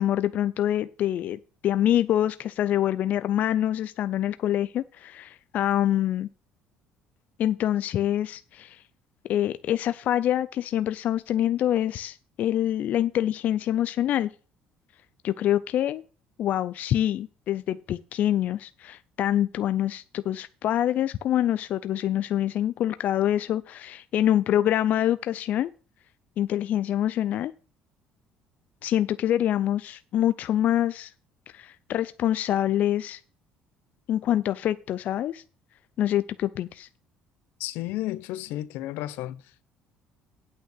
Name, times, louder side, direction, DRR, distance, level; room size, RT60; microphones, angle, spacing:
voice 1, 0.0-6.3 7.4-8.8 9.3-14.3 15.2-16.0 16.4-25.7 26.4-27.5 28.8-31.1 31.5-33.2 34.1-35.4 36.0-36.9, left 11 dB, 50° left, 0.4 m, -25 dB
voice 2, 37.6-39.4, left 15 dB, 80° left, 0.7 m, -32 dB
8.9 x 5.5 x 7.9 m
cardioid pair, 140°, 3 cm